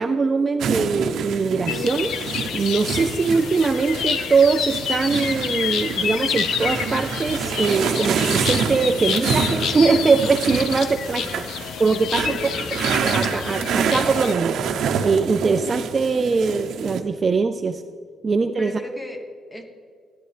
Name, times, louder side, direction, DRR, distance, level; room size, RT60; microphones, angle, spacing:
voice 1, 0.0-2.1 2.5-11.2 11.8-12.4 13.0-14.5 15.0-17.8 18.2-18.7, right 4 dB, 25° right, 8 dB, 0.3 m, -21 dB
sound 1, 0.6-4.3 4.7-11.7 12.1-17.0, right 6 dB, 70° right, 0.7 m, -27 dB
sound 2, 1.7-14.3, left 7 dB, 70° left, 0.6 m, -28 dB
voice 2, 11.0-11.6 12.2-12.9 18.6-19.6, equal, 10° left, 5 dB, 0.9 m, -38 dB
13.5 x 10.0 x 3.3 m, 2.2 s
cardioid pair, 170°, 0 cm